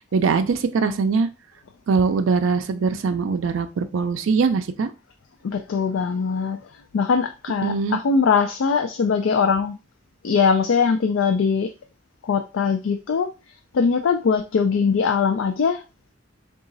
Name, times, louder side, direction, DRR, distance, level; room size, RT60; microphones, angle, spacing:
voice 1, 0.1-1.3 1.9-4.9 7.6-8.0, right 5 dB, 85° right, 0.4 m, -22 dB
voice 2, 5.4-6.6 6.9-9.7 10.2-11.7 12.2-13.3 13.7-15.8, left 5 dB, 90° left, 0.4 m, -21 dB
3.9 x 2.4 x 3.8 m
head